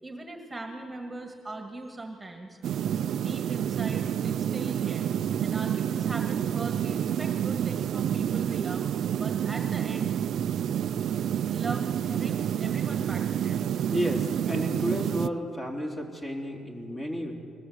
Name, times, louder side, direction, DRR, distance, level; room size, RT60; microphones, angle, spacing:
voice 1, 0.0-2.7 3.1-5.1 5.4-8.8 9.2-10.1 11.5-13.7, right 2 dB, 15° right, 4 dB, 1.8 m, -40 dB
sound 1, 2.6-15.3, right 9 dB, 65° right, 0.4 m, -28 dB
voice 2, 13.9-17.3, equal, 25° left, 1 dB, 3.4 m, -32 dB
20.5 x 17.0 x 7.9 m, 2.5 s
cardioid pair, 105°, 0 cm